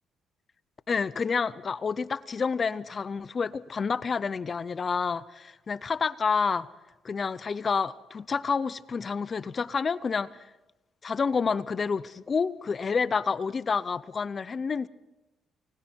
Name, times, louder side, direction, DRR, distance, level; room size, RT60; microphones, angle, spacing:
voice 1, 0.9-6.7 7.0-10.5 11.0-14.9, left 5 dB, 40° left, 0.6 m, -29 dB
29.5 x 21.0 x 4.6 m
cardioid pair, 90°, 0 cm